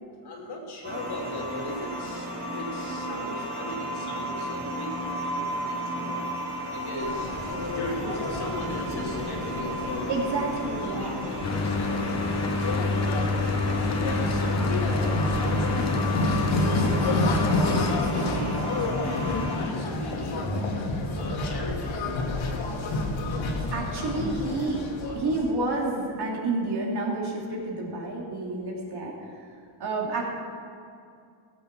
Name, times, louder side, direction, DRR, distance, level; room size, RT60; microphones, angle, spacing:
voice 1, 0.2-6.2 6.7-7.3 7.7-10.2 10.8-12.0 12.6-13.2 13.8-14.8 15.3-17.3 17.6-18.6 19.0-20.5 21.1-23.5 24.2-24.6 25.0-25.2, left 1 dB, 55° left, -2 dB, 2.9 m, -38 dB
sound 1, 0.8-19.6, equal, 20° right, 3.3 m, -34 dB
sound 2, 7.0-25.5, left 2 dB, 75° left, 1.9 m, -30 dB
voice 2, 10.1-11.2 23.7-24.8 25.1-29.4 29.8-30.2, right 2 dB, 55° right, -2 dB, 2.8 m, -29 dB
Mechanical fan, 11.4-18.0, left 2 dB, 35° left, 1.0 m, -27 dB
17.5 x 8.3 x 6.0 m, 2.4 s
wide cardioid pair, 160°, 47 cm